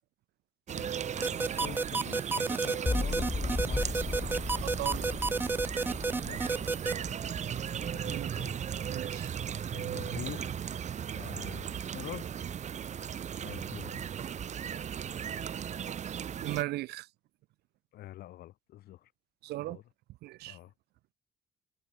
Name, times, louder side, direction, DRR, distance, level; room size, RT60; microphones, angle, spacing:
voice 1, 0.7-4.4 6.2-6.4 7.9-8.6 9.7-10.6 11.1-12.3 13.4-14.0 17.9-19.1 19.6-19.8 20.5-20.7, left 14 dB, 65° left, 1.1 m, -46 dB
sound 1, 0.7-16.6, right 8 dB, 45° right, 1.6 m, -37 dB
sound 2, 1.2-6.9, right 3 dB, 10° right, 0.4 m, -30 dB
sound 3, 2.9-8.9, left 3 dB, 15° left, 1.0 m, -36 dB
voice 2, 4.6-5.0 8.0-8.4 8.9-9.3 16.4-17.1 19.4-19.8 20.2-20.6, right 17 dB, 75° right, 0.7 m, -37 dB
cardioid pair, 110°, 17 cm